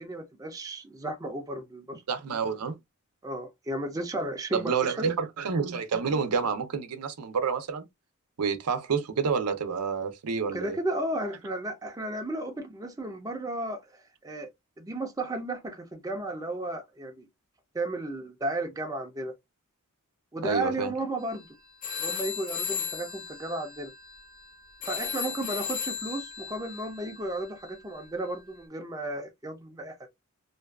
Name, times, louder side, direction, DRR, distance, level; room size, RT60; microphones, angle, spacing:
voice 1, 0.0-2.0 3.2-5.1 10.5-14.5 14.8-17.3 17.7-19.3 20.3-21.5 22.0-23.9 24.8-30.1, right 1 dB, 15° right, 0.5 m, -34 dB
voice 2, 2.1-2.8 4.5-7.8 8.4-10.8 20.4-20.9, right 5 dB, 90° right, 0.6 m, -28 dB
sound 1, 21.2-21.4 21.8-28.5, left 7 dB, 40° left, 0.8 m, -36 dB
2.5 x 2.3 x 2.3 m
head